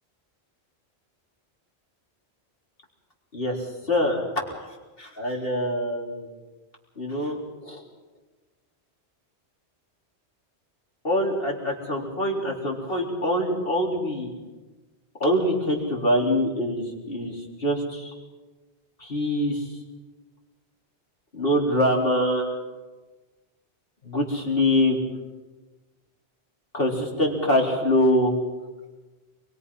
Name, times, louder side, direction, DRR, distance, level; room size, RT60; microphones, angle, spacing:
voice 1, 3.3-4.2 5.0-6.3 7.0-7.4 7.6-7.8 11.0-14.3 15.2-18.1 19.0-19.6 21.3-22.4 24.0-25.0 26.7-28.3, left 1 dB, 55° left, -1 dB, 4.1 m, -24 dB
24.5 x 22.5 x 5.6 m, 1.2 s
omnidirectional pair, 1.1 m